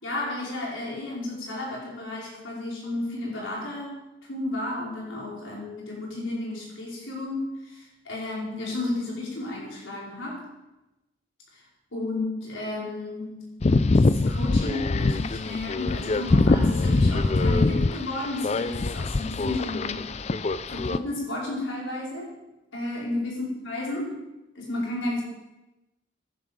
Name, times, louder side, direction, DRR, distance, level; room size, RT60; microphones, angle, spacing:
voice 1, 0.0-10.5 11.5-11.6 11.9-13.5 13.9-20.1 20.7-22.3 22.7-24.2 24.5-25.2, left 2 dB, 80° left, -3 dB, 4.9 m, -32 dB
sound 1, 13.6-21.0, left 3 dB, 35° left, 0.4 m, -23 dB
14.0 x 11.0 x 5.3 m, 0.99 s
head